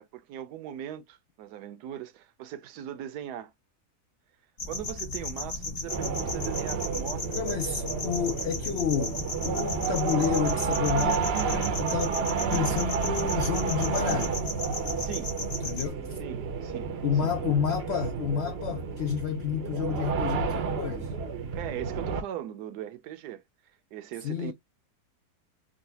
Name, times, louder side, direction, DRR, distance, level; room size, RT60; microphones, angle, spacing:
voice 1, 0.0-3.5 4.7-7.4 15.0-15.3 16.2-17.3 21.5-23.4 23.9-24.5, right 11 dB, 80° right, 1.1 m, -40 dB
sound 1, 4.6-15.9, left 3 dB, 40° left, 1.1 m, -36 dB
sound 2, 5.9-22.2, right 5 dB, 60° right, 0.6 m, -31 dB
voice 2, 7.4-9.2 9.4-12.2 12.5-14.4 15.6-16.2 17.0-21.1 24.2-24.5, left 8 dB, 85° left, 0.5 m, -30 dB
3.9 x 2.2 x 2.7 m
omnidirectional pair, 1.7 m